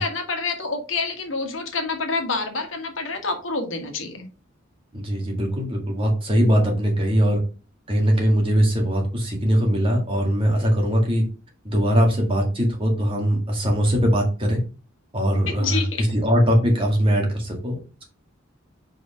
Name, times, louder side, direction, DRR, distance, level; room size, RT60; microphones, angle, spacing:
voice 1, 0.0-4.2 15.5-16.0, left 4 dB, 75° left, 5 dB, 1.5 m, -27 dB
voice 2, 4.9-7.4 7.9-11.2 11.6-14.6 15.1-17.8, equal, 25° right, 1 dB, 2.0 m, -21 dB
4.9 x 4.8 x 5.0 m, 0.35 s
head